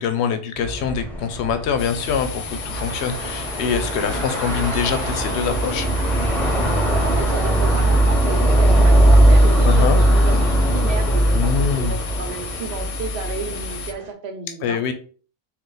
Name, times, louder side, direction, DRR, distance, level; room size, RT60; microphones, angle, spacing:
voice 1, 0.0-5.9 9.6-10.0 11.3-12.0 14.6-14.9, left 7 dB, 85° left, 8 dB, 0.9 m, -24 dB
sound 1, 0.6-13.9, right 1 dB, ahead, 0.9 m, -19 dB
sound 2, 1.8-13.9, left 7 dB, 45° left, 0.5 m, -35 dB
sound 3, 2.7-14.1, right 3 dB, 45° right, 0.7 m, -39 dB
voice 2, 6.9-14.8, right 5 dB, 75° right, 5 dB, 1.0 m, -32 dB
3.9 x 2.5 x 3.8 m, 0.40 s
omnidirectional pair, 1.1 m